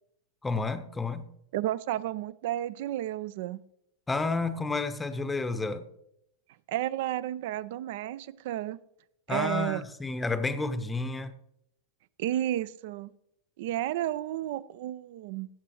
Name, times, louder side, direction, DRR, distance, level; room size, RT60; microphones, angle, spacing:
voice 1, 0.4-1.3 4.1-5.8 9.3-11.3, left 3 dB, 10° left, 0.7 m, -30 dB
voice 2, 1.5-3.6 6.7-8.8 9.3-9.8 12.2-13.1 13.6-15.5, right 13 dB, 50° right, 0.4 m, -32 dB
16.0 x 7.6 x 3.0 m
figure-of-eight pair, 90°, 0 cm